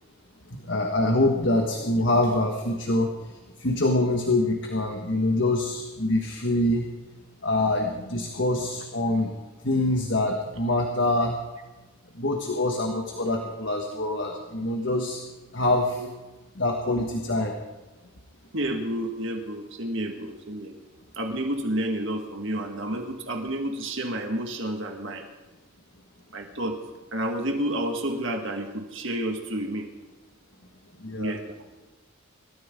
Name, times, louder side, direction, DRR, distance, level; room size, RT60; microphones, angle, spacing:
voice 1, 0.5-6.9 7.4-9.3 9.6-11.4 12.1-15.2 15.5-16.0 16.5-17.6 31.0-31.3, left 1 dB, 55° left, 2 dB, 1.6 m, -25 dB
voice 2, 18.5-20.7 21.2-25.2 26.3-26.8 27.1-29.9 31.2-31.4, right 1 dB, 60° right, 3 dB, 1.8 m, -30 dB
26.0 x 14.0 x 3.8 m, 1.1 s
head